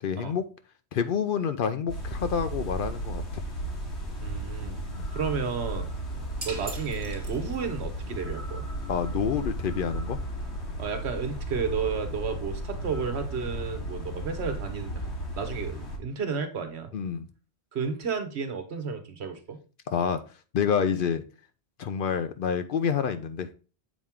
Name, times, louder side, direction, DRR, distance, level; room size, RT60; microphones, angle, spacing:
voice 1, 0.0-0.4 0.9-3.4 5.0-5.1 8.9-10.2 16.9-17.3 19.9-20.2 20.5-21.2 21.8-23.5, left 7 dB, 60° left, 10 dB, 0.7 m, -28 dB
sound 1, 1.9-16.0, right 1 dB, 85° left, 1.9 m, -34 dB
voice 2, 4.2-4.8 5.1-6.0 6.4-8.7 10.8-16.9 17.7-19.6, right 6 dB, 75° right, 8 dB, 1.2 m, -32 dB
sound 2, 6.4-7.9, right 2 dB, 35° right, 1.4 m, -41 dB
7.2 x 4.4 x 3.5 m, 0.35 s
omnidirectional pair, 1.1 m